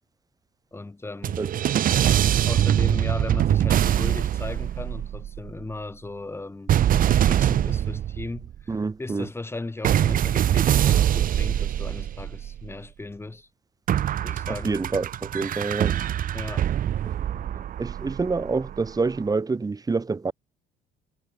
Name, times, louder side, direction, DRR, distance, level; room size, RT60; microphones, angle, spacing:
voice 1, 0.7-1.4 2.5-13.5 14.2-14.8 16.3-16.7 17.3-17.7, left 2 dB, 15° left, 7.8 m, -36 dB
sound 1, 1.2-5.5 6.7-8.6 9.8-12.7 13.9-18.9, right 11 dB, 55° right, 1.8 m, -23 dB
voice 2, 8.7-9.3 14.6-16.0 17.8-20.3, right 4 dB, 20° right, 3.3 m, -27 dB
cardioid pair, 110°, 17 cm